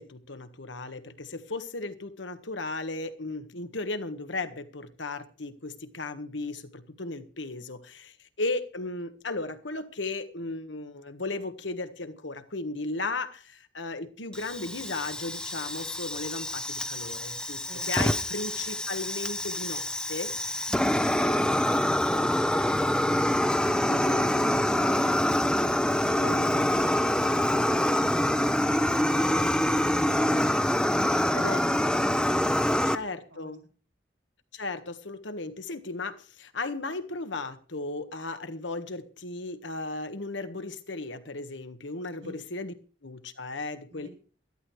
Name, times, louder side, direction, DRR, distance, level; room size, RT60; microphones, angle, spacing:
voice 1, 0.0-20.3 23.9-24.5 26.2-26.5 31.3-31.6 32.8-33.6 34.5-42.7 43.0-44.1, left 3 dB, 85° left, 9 dB, 1.6 m, -36 dB
Fire, 14.3-32.9, left 1 dB, 5° left, 0.7 m, -26 dB
voice 2, 17.6-18.0 20.7-23.5 33.3-33.6 42.2-42.3 43.9-44.1, right 1 dB, 90° right, 3 dB, 7.8 m, -49 dB
13.5 x 12.5 x 4.8 m, 0.39 s
head